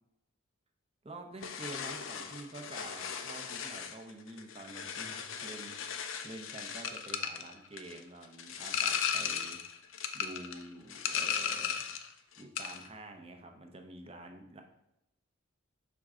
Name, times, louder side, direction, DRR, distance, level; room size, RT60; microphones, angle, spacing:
voice 1, 1.0-9.6 10.1-12.0 12.4-14.6, right 2 dB, 30° right, 4 dB, 0.8 m, -48 dB
sound 1, 1.4-12.1 12.4-12.9, left 7 dB, 70° left, 0.6 m, -37 dB
6.5 x 4.6 x 3.7 m, 0.84 s
head